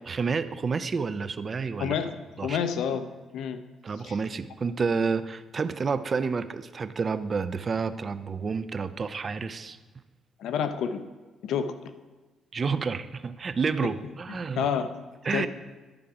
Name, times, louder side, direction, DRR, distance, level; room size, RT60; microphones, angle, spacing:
voice 1, 0.1-1.9 2.4-2.6 3.8-9.8 12.5-14.7 15.2-15.5, right 5 dB, 30° right, 12 dB, 0.4 m, -29 dB
voice 2, 1.8-3.6 4.0-4.1 10.4-11.0 11.4-11.7 14.6-15.0 15.3-15.5, left 7 dB, 75° left, 10 dB, 0.6 m, -29 dB
11.0 x 4.8 x 5.8 m, 1.3 s
cardioid pair, 160°, 0 cm